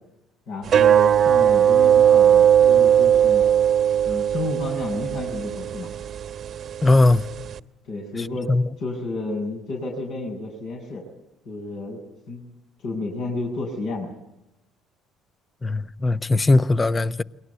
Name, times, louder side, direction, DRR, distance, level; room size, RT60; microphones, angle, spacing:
voice 1, 0.5-3.5 4.1-5.9 7.8-8.5 8.8-11.0 11.5-12.0 12.3-12.4 12.8-14.1, left 2 dB, 65° left, 7.0 m, -31 dB
sound 1, 0.7-7.6, right 9 dB, 50° right, 1.2 m, -18 dB
voice 2, 6.8-7.3 8.5-8.6 15.6-17.2, left 2 dB, 25° left, 1.0 m, -19 dB
30.0 x 22.5 x 8.4 m
hypercardioid pair, 55°, 0 cm